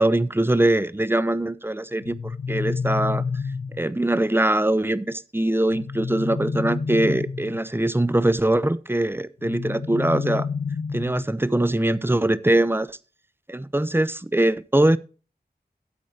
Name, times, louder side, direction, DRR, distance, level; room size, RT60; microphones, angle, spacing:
voice 1, 0.0-3.2 3.8-10.5 10.9-13.0 13.5-15.0, right 1 dB, 15° right, 0.6 m, -22 dB
sound 1, 2.0-4.0 5.7-7.7 9.4-11.4, left 5 dB, 75° left, 0.7 m, -29 dB
12.5 x 8.5 x 2.8 m
wide cardioid pair, 55°, 17 cm